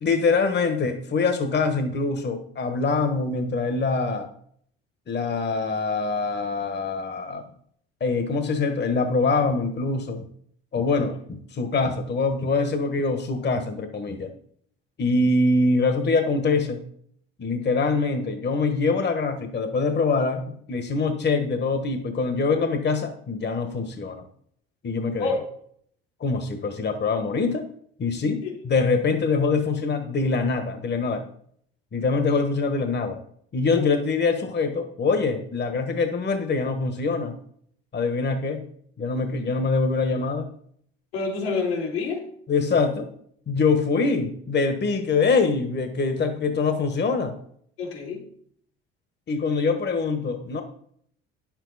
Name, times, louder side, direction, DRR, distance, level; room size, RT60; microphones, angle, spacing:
voice 1, 0.0-4.3 5.1-7.4 8.0-10.3 10.7-14.3 15.0-16.8 17.4-20.4 20.7-24.2 24.8-25.4 26.2-27.6 28.0-31.2 31.9-33.2 33.5-37.3 37.9-38.6 39.0-40.5 42.5-43.1 43.5-47.4 49.3-50.6, left 4 dB, 35° left, 7 dB, 1.4 m, -24 dB
voice 2, 41.1-42.3 47.8-48.2, left 4 dB, 85° left, -2 dB, 3.6 m, -28 dB
9.8 x 7.4 x 4.1 m, 0.65 s
hypercardioid pair, 60°, 30 cm